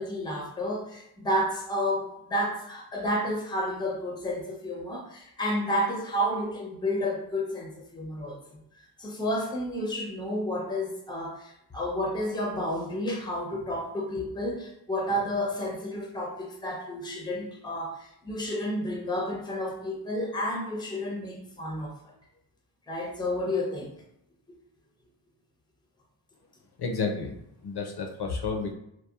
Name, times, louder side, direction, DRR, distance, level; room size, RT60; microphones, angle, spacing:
voice 1, 0.0-8.4 9.0-21.9 22.9-23.9, equal, 10° left, 0 dB, 0.6 m, -31 dB
voice 2, 26.8-28.7, left 4 dB, 60° left, 2 dB, 0.5 m, -31 dB
2.7 x 2.1 x 2.3 m, 0.77 s
cardioid pair, 65°, 46 cm